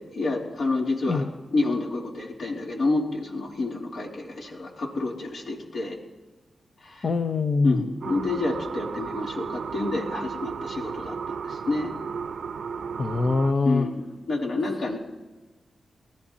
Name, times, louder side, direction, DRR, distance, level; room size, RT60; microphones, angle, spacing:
voice 1, 0.1-1.3 1.5-6.0 6.8-7.1 7.6-11.9 13.6-15.0, left 2 dB, 75° left, -2 dB, 3.1 m, -28 dB
voice 2, 7.0-7.8 13.0-13.9, left 3 dB, 60° left, 6 dB, 0.7 m, -23 dB
sound 1, 8.0-13.5, right 6 dB, 80° right, 0.6 m, -34 dB
24.5 x 14.5 x 2.8 m, 1.2 s
cardioid pair, 65°, 0 cm